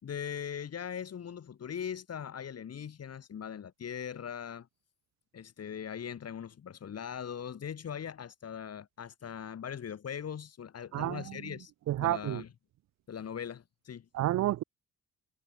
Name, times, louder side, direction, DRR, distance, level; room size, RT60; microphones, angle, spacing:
voice 1, 0.0-4.7 5.3-11.7 12.0-12.5 13.1-14.0, left 8 dB, 55° left, 6.7 m, -40 dB
voice 2, 10.9-11.5 11.9-12.4 14.1-14.6, right 14 dB, 65° right, 0.6 m, -30 dB
cardioid pair, 90°, 30 cm